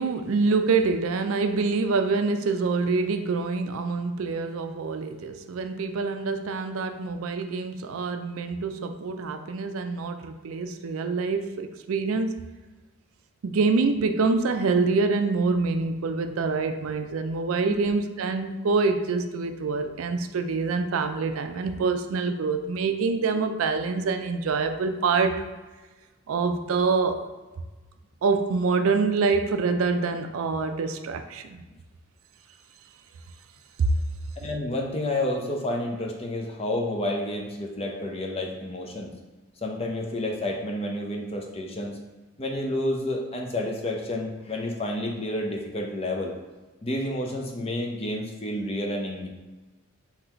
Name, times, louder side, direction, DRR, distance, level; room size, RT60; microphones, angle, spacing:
voice 1, 0.0-12.4 13.4-25.4 26.3-27.2 28.2-31.6 33.8-33.9, right 4 dB, 85° right, 7 dB, 0.4 m, -26 dB
voice 2, 34.4-39.1 39.6-42.0 42.4-46.3 46.8-49.3, left 1 dB, 30° left, 0 dB, 0.6 m, -30 dB
3.9 x 2.9 x 4.3 m, 1.2 s
head